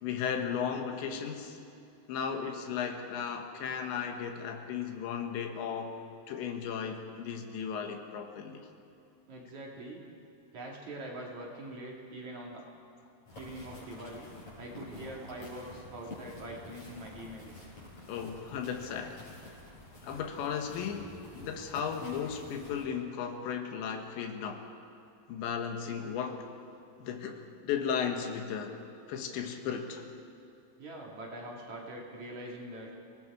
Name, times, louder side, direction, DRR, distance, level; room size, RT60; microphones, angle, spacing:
voice 1, 0.0-1.6 2.1-6.0 6.3-8.7 18.1-19.2 20.0-24.7 25.3-26.5 27.0-28.8 29.1-30.0, left 7 dB, 80° left, 4 dB, 3.6 m, -35 dB
voice 2, 9.3-10.0 10.5-12.7 13.4-14.3 14.6-17.7 30.8-32.9, right 1 dB, 50° right, -2 dB, 3.0 m, -43 dB
sound 1, 13.3-22.9, left 2 dB, 30° left, 6.3 m, -49 dB
29.0 x 18.5 x 4.8 m, 2.5 s
omnidirectional pair, 5.2 m